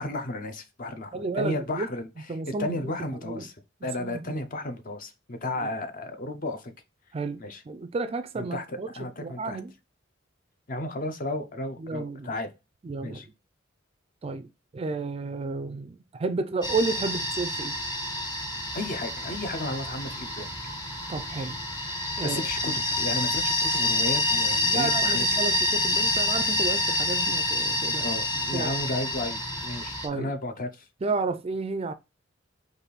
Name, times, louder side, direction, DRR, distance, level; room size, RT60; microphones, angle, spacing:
voice 1, 0.0-3.5 3.8-6.7 7.4-7.6 8.3-9.6 10.7-12.5 13.0-13.3 18.7-20.5 22.2-25.2 28.0-30.9, left 1 dB, 45° left, 0.8 m, -33 dB
voice 2, 1.1-1.9 2.3-2.9 3.2-3.5 4.0-4.4 5.6-5.7 7.1-8.9 9.2-9.7 11.8-12.3 12.8-13.3 14.2-17.8 21.1-21.6 22.2-22.4 22.6-22.8 24.6-28.1 28.5-28.8 30.0-30.3 31.0-31.9, right 3 dB, 30° right, 0.4 m, -32 dB
sound 1, 16.6-30.1, left 1 dB, 20° left, 1.2 m, -27 dB
5.1 x 2.6 x 4.0 m
head